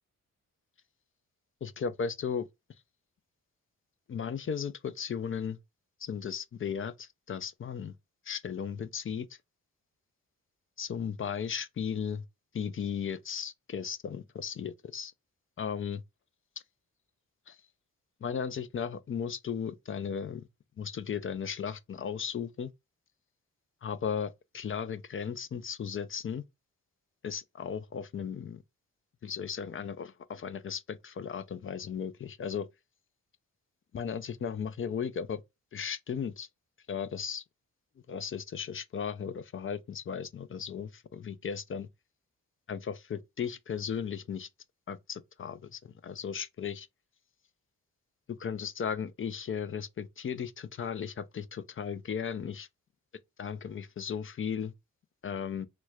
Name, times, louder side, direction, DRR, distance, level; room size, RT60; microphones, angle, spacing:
voice 1, 1.6-2.5 4.1-5.6 6.0-7.9 8.3-9.3 10.8-12.2 12.5-15.1 15.6-16.0 17.5-17.6 18.2-20.4 20.8-22.7 23.8-26.4 27.2-28.6 29.2-32.7 33.9-35.4 35.7-36.5 36.9-37.4 38.1-41.9 42.7-44.5 44.9-46.9 48.4-52.7 53.4-54.7 55.2-55.7, left 7 dB, 40° left, 0.4 m, -36 dB
3.2 x 3.0 x 2.3 m
cardioid pair, 70°, 34 cm